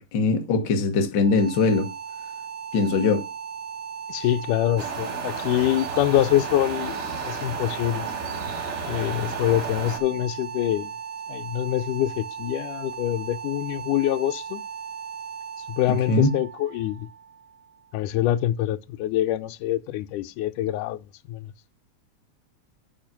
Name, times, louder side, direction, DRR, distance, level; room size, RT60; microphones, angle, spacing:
voice 1, 0.0-1.9 2.7-3.2 16.1-16.3, left 3 dB, 50° left, 1.4 m, -21 dB
sound 1, 1.1-18.1, right 7 dB, 55° right, 1.9 m, -37 dB
voice 2, 4.1-8.1 8.9-10.9 11.3-14.6 15.7-17.1 17.9-21.0 21.3-21.5, left 13 dB, 85° left, 2.1 m, -25 dB
sound 2, 4.8-10.0, right 5 dB, 85° right, 3.7 m, -33 dB
9.1 x 5.0 x 5.7 m
omnidirectional pair, 3.6 m